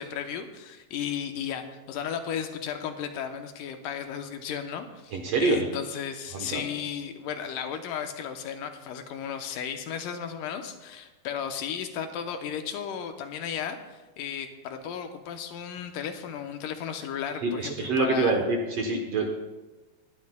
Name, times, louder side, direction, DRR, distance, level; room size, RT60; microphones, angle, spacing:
voice 1, 0.0-18.4, left 8 dB, 80° left, 6 dB, 2.4 m, -34 dB
voice 2, 5.1-5.7 6.3-6.6 17.4-19.3, right 3 dB, 65° right, 3 dB, 1.7 m, -26 dB
20.5 x 12.0 x 2.3 m, 1.2 s
omnidirectional pair, 3.9 m